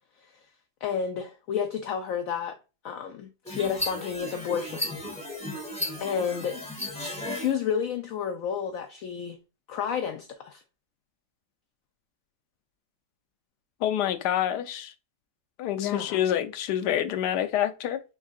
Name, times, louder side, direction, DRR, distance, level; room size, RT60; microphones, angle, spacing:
voice 1, 0.8-2.6 2.8-4.9 6.0-6.7 7.3-9.4 9.7-10.6 15.8-16.2, left 7 dB, 70° left, 0.9 m, -30 dB
sound 1, 3.5-7.5, left 1 dB, 5° left, 1.4 m, -34 dB
voice 2, 13.8-14.9 15.6-18.0, left 11 dB, 90° left, 1.2 m, -27 dB
5.4 x 3.6 x 2.4 m
omnidirectional pair, 1.7 m